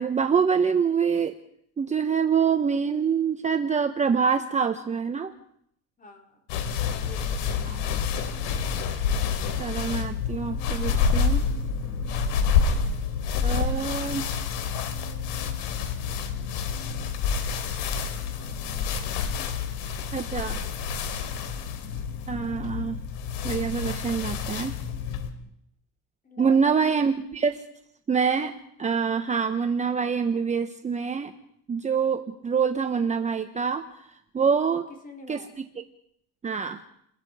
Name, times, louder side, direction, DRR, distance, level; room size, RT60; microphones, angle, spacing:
voice 1, 0.0-1.4 1.8-5.3 7.7-7.8 9.6-11.4 13.4-14.5 20.1-20.6 22.3-23.0 23.4-24.7 26.4-27.6 28.1-31.3 31.7-34.8 35.3-35.4 36.4-36.8, right 6 dB, 20° right, 6 dB, 1.2 m, -25 dB
voice 2, 6.0-6.5 7.0-8.0 18.4-18.8 19.3-19.5 26.2-27.1 34.7-35.5, left 2 dB, 20° left, 2 dB, 4.7 m, -47 dB
sound 1, 6.5-25.3, left 6 dB, 80° left, 3.4 m, -28 dB
29.5 x 22.0 x 5.0 m, 0.73 s
cardioid pair, 125°, 36 cm